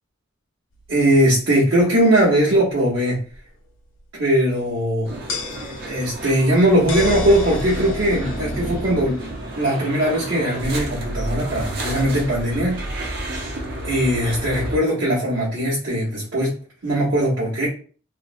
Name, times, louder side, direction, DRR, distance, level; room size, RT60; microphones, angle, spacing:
sound 1, 0.9-1.0 3.3-3.4 5.3-9.7, left 5 dB, 90° left, 0.6 m, -33 dB
voice 1, 0.9-3.2 4.2-5.1 5.8-9.2 9.6-12.8 13.8-16.5 16.8-17.7, right 1 dB, 85° right, -10 dB, 1.0 m, -19 dB
sound 2, 5.0-14.8, right 1 dB, 55° right, 0.5 m, -30 dB
2.5 x 2.0 x 2.5 m, 0.42 s
head